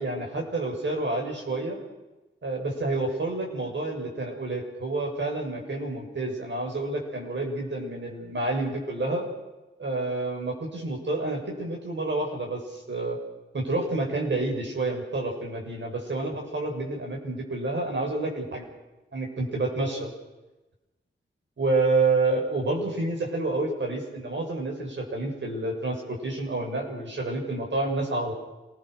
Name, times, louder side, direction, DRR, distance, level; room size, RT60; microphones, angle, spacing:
voice 1, 0.0-1.8 2.4-9.3 9.8-13.2 13.5-18.6 19.1-20.1 21.6-28.3, right 2 dB, 65° right, 0 dB, 6.9 m, -29 dB
27.0 x 20.5 x 6.6 m, 1.1 s
wide cardioid pair, 105°, 20 cm